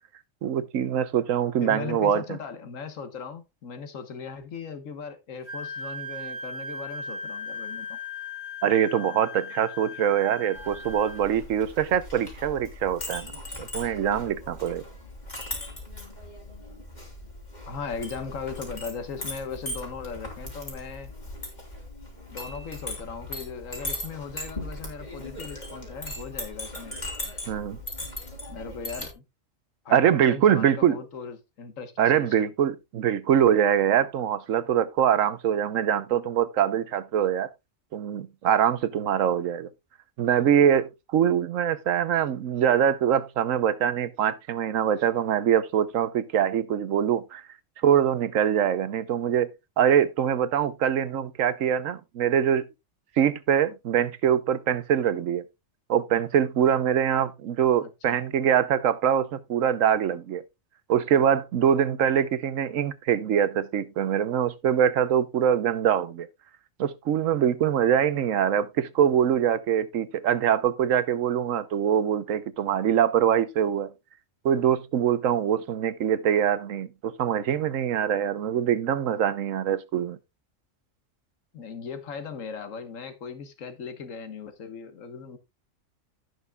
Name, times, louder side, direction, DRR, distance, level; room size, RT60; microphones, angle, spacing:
voice 1, 0.4-2.2 8.6-14.8 27.5-27.8 29.9-31.0 32.0-37.5 37.9-39.7 40.2-47.4 47.8-49.5 49.8-52.7 53.2-55.4 55.9-60.4 60.9-66.3 66.8-73.9 74.4-80.2, right 9 dB, 90° right, 1.2 m, -23 dB
voice 2, 1.6-8.0 17.7-21.1 22.3-27.0 28.5-29.2 29.8-32.5 57.8-58.2 81.5-85.4, left 5 dB, 85° left, 1.6 m, -38 dB
Wind instrument woodwind instrument, 5.5-11.3, left 3 dB, 55° left, 2.9 m, -38 dB
Chink clink, 10.5-29.1, left 1 dB, 35° left, 3.3 m, -39 dB
16.5 x 6.4 x 2.3 m
omnidirectional pair, 1.3 m